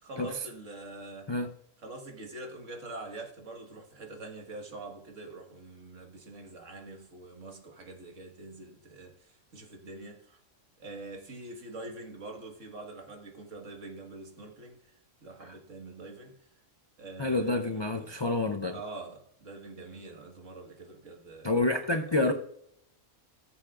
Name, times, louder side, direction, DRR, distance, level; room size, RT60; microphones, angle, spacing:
voice 1, 0.0-1.3 1.8-10.4 10.8-16.3 17.0-18.2 18.7-21.7, right 2 dB, 60° right, 2.0 m, -45 dB
voice 2, 17.2-18.8 21.4-22.3, left 2 dB, 40° left, 0.3 m, -28 dB
18.0 x 7.3 x 2.4 m
omnidirectional pair, 1.5 m